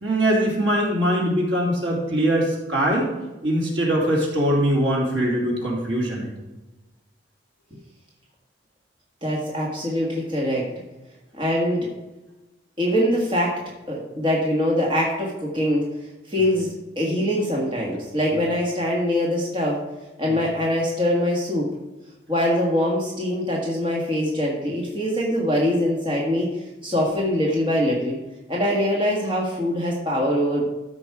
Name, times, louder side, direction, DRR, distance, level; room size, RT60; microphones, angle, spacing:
voice 1, 0.0-3.1 3.4-6.3 18.3-18.4, right 1 dB, 75° right, -3 dB, 3.0 m, -22 dB
voice 2, 9.2-10.7 11.4-11.9 12.8-13.6 13.9-15.9 16.3-16.7 16.9-19.8 20.2-21.7 22.3-26.5 26.8-28.2 28.5-30.7, equal, 25° right, -3 dB, 1.7 m, -23 dB
13.0 x 5.4 x 4.7 m, 1.1 s
head